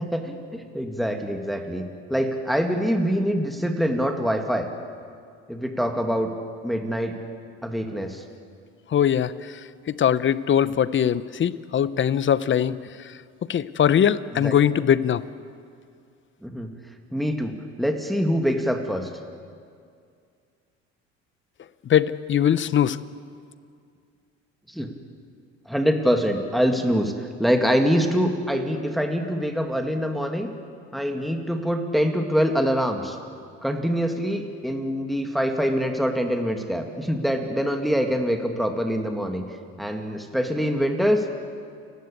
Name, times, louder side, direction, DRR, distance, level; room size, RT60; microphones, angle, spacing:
voice 1, 0.0-4.7 5.5-6.3 6.6-7.2 7.6-8.2 14.4-14.5 16.4-16.7 17.1-19.1 24.7-24.9 25.7-30.5 30.9-33.2 33.6-39.4 39.8-41.3, equal, ahead, 4 dB, 2.1 m, -24 dB
voice 2, 8.9-9.6 9.9-13.2 13.5-15.2 21.8-23.0, left 9 dB, 40° left, 16 dB, 0.8 m, -21 dB
29.5 x 12.5 x 8.6 m, 2.3 s
supercardioid pair, 85°, 30 cm